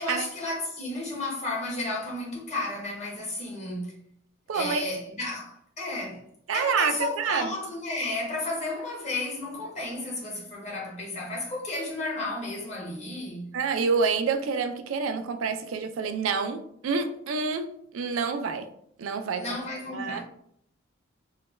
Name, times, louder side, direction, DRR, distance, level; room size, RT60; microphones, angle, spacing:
voice 1, 0.0-4.0 4.5-6.2 6.5-13.5 19.3-20.2, left 2 dB, 35° left, 0.9 m, -33 dB
voice 2, 4.5-4.9 6.5-7.5 13.5-18.7 19.0-19.4 19.9-20.2, right 5 dB, 90° right, 0.4 m, -28 dB
3.2 x 2.2 x 3.1 m
head